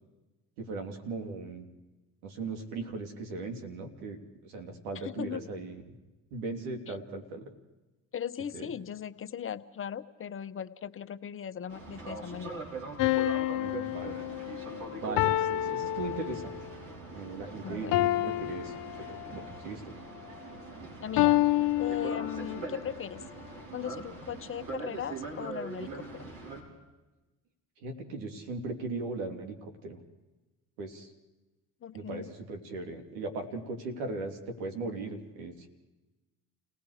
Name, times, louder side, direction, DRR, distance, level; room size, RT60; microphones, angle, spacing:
voice 1, 0.6-1.7 2.2-6.0 6.3-7.5 8.5-8.7 13.6-14.2 15.0-16.5 17.1-19.9 27.8-30.0 30.8-31.1 31.9-35.7, right 3 dB, 85° right, 5 dB, 2.8 m, -38 dB
voice 2, 5.0-5.4 6.9-7.0 8.1-12.6 17.6-17.9 21.0-21.4 21.8-23.2 23.7-26.3 31.8-32.3, left 8 dB, 35° left, 11 dB, 0.9 m, -38 dB
Boat Water vehicle, 11.7-26.6, right 3 dB, 70° right, 5.5 m, -42 dB
sound 1, 13.0-16.7 17.9-19.5 21.2-22.7, left 15 dB, 70° left, 0.8 m, -29 dB
30.0 x 18.0 x 4.9 m, 1.1 s
supercardioid pair, 80°, 35 cm